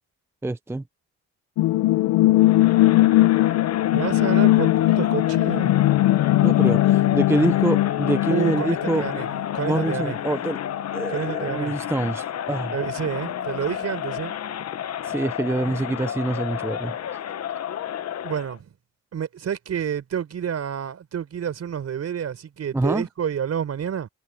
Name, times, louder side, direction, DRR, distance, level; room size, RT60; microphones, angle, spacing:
voice 1, 0.4-0.8 6.4-9.1 9.6-10.6 10.9-12.8 15.0-17.2 22.7-23.1, right 2 dB, 10° right, 0.6 m, -26 dB
sound 1, 1.6-11.1 11.5-11.6, left 16 dB, 90° left, 0.7 m, -20 dB
Crowd, 2.4-18.6, left 9 dB, 60° left, 1.3 m, -31 dB
voice 2, 3.9-5.8 8.3-9.3 9.5-10.2 11.1-11.8 12.7-14.3 18.2-18.7 19.1-24.1, right 8 dB, 55° right, 4.9 m, -29 dB
cardioid pair, 90°, 30 cm